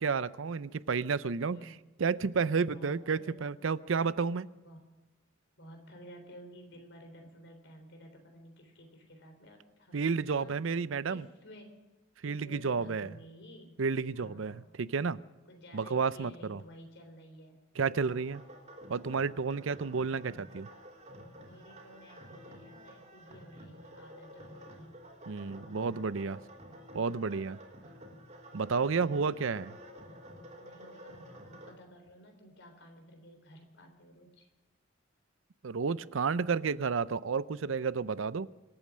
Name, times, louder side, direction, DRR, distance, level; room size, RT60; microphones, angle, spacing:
voice 1, 0.0-1.7 2.0-4.5 9.9-11.2 12.2-13.1 13.8-15.2 15.7-16.6 17.8-18.4 18.9-20.7 25.3-26.4 26.9-27.6 28.5-29.7 35.6-38.5, right 5 dB, 70° right, 17 dB, 0.5 m, -31 dB
voice 2, 1.5-1.8 2.7-3.4 4.6-4.8 5.6-10.7 11.0-11.8 12.3-13.8 14.1-14.8 15.5-17.6 21.4-25.0 26.4-26.6 28.7-29.5 30.6-34.5, equal, 60° left, 4 dB, 3.8 m, -53 dB
sound 1, 18.0-31.7, equal, 35° right, 3.1 m, -51 dB
25.5 x 8.8 x 6.3 m, 1.1 s
head